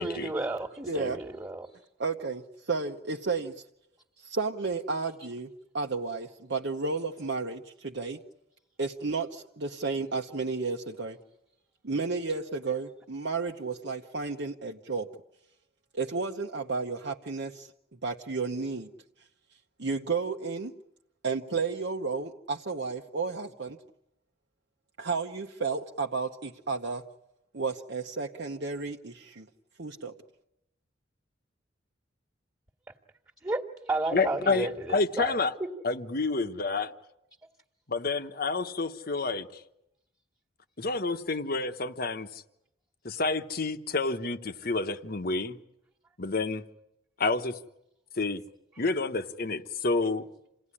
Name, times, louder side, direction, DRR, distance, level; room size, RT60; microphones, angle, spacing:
voice 1, 0.0-1.7 33.4-35.4, right 2 dB, 15° right, 1.8 m, -32 dB
voice 2, 0.9-1.2 2.0-3.7 4.2-8.2 8.8-11.2 11.8-15.1 15.9-18.9 19.2-19.3 19.8-20.7 21.2-23.8 25.0-27.0 27.5-29.5 29.8-30.1, right 4 dB, 60° right, 1.0 m, -32 dB
voice 3, 34.1-35.5 35.8-36.9 37.9-39.6 40.8-42.4 43.0-45.6 46.2-46.6 47.2-47.6 48.2-48.4 48.8-50.2, left 3 dB, 50° left, 1.2 m, -29 dB
28.0 x 17.5 x 10.0 m
head